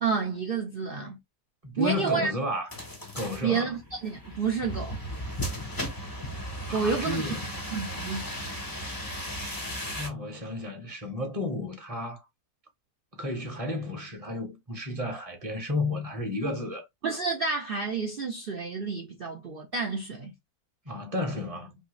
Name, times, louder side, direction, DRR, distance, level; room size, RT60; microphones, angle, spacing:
voice 1, 0.0-1.2 1.8-2.3 3.4-5.0 6.7-7.3 7.7-8.2 16.4-16.5 17.0-20.3, right 5 dB, 65° right, 0.5 m, -29 dB
voice 2, 1.6-2.7 3.1-3.7 6.7-7.5 10.0-12.2 13.1-16.8 20.8-21.8, left 2 dB, 25° right, 0.8 m, -32 dB
sound 1, 2.7-10.1, equal, 20° left, 0.5 m, -36 dB
3.4 x 2.7 x 2.9 m
omnidirectional pair, 1.8 m